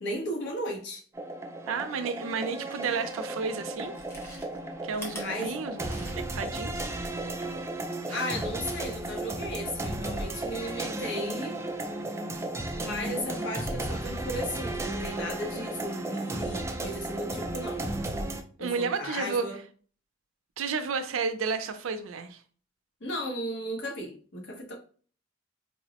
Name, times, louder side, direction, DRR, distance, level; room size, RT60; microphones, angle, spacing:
voice 1, 0.0-1.0 5.2-5.6 8.1-11.6 12.7-17.9 18.6-19.6 23.0-24.8, equal, 60° left, 0.9 m, -35 dB
sound 1, 1.1-18.4, right 2 dB, 15° right, 0.3 m, -34 dB
voice 2, 1.7-4.0 4.8-5.8 6.3-6.9 8.1-8.2 18.6-19.5 20.6-22.4, right 5 dB, 85° right, 0.4 m, -31 dB
Chewing mastication, 3.0-3.1 3.8-6.5 6.8-6.9, equal, 15° left, 0.8 m, -45 dB
4.2 x 2.0 x 2.8 m
head